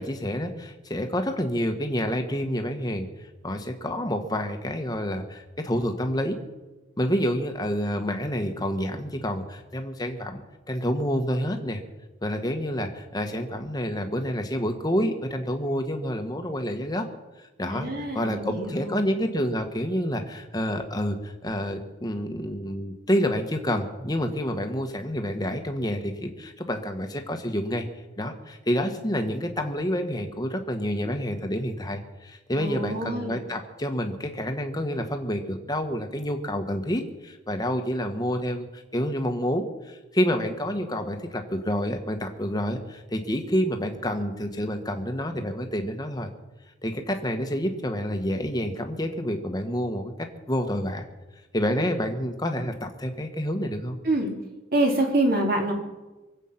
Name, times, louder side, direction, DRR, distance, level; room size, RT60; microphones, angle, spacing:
voice 1, 0.0-3.1 3.4-6.4 7.0-11.8 12.2-17.1 17.6-17.9 18.1-27.8 28.2-46.3 46.8-50.1 50.5-51.0 51.5-54.0, equal, 20° left, 5 dB, 1.3 m, -28 dB
voice 2, 17.6-18.9 32.5-33.4 54.0-54.3 54.7-55.7, right 1 dB, 50° right, 1 dB, 2.8 m, -26 dB
24.0 x 8.3 x 5.9 m, 1.1 s
head